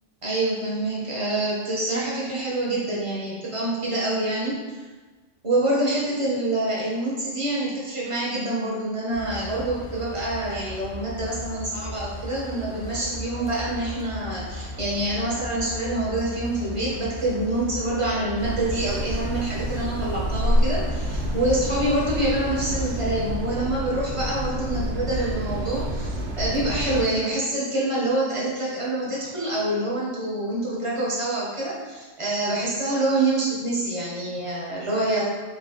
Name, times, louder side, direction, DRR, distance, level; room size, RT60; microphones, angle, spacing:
voice 1, 0.2-4.8 5.4-35.2, right 1 dB, 30° right, -6 dB, 0.7 m, -26 dB
sound 1, 9.1-23.0, left 1 dB, 40° left, 0.5 m, -37 dB
sound 2, 18.4-27.0, equal, 75° right, 0.9 m, -28 dB
3.3 x 2.7 x 2.7 m, 1.3 s
omnidirectional pair, 1.3 m